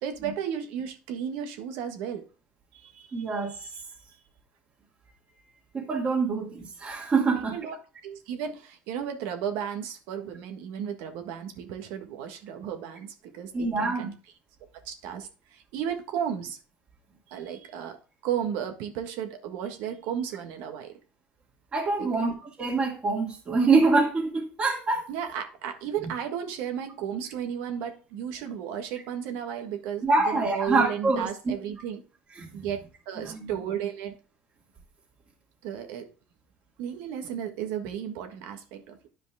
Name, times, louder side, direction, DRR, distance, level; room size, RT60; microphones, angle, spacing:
voice 1, 0.0-2.2 2.7-3.8 7.5-7.8 8.0-14.1 14.8-16.6 17.3-18.0 18.2-21.0 22.0-22.3 25.1-32.0 32.5-34.2 35.6-36.1 36.8-39.1, right 9 dB, 80° right, 6 dB, 1.5 m, -34 dB
voice 2, 3.1-3.5 5.7-7.6 13.5-14.1 21.7-25.0 30.0-31.5 32.4-32.7 33.2-33.5, right 3 dB, 30° right, -4 dB, 2.5 m, -25 dB
10.0 x 5.1 x 3.5 m, 0.35 s
supercardioid pair, 110°, 4 cm